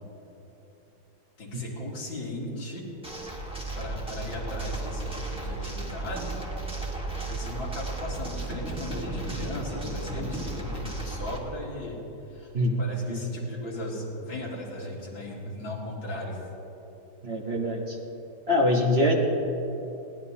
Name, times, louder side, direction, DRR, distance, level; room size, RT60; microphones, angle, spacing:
voice 1, 1.4-2.9 3.8-6.4 7.3-12.0 12.3-12.5 12.8-16.4, left 1 dB, 90° left, -5 dB, 3.5 m, -37 dB
sound 1, 3.0-11.4, right 2 dB, 5° right, 1.6 m, -34 dB
voice 2, 17.2-18.0 18.5-19.1, left 1 dB, 35° right, 0 dB, 1.3 m, -24 dB
21.0 x 17.5 x 2.9 m, 3.0 s
omnidirectional pair, 2.0 m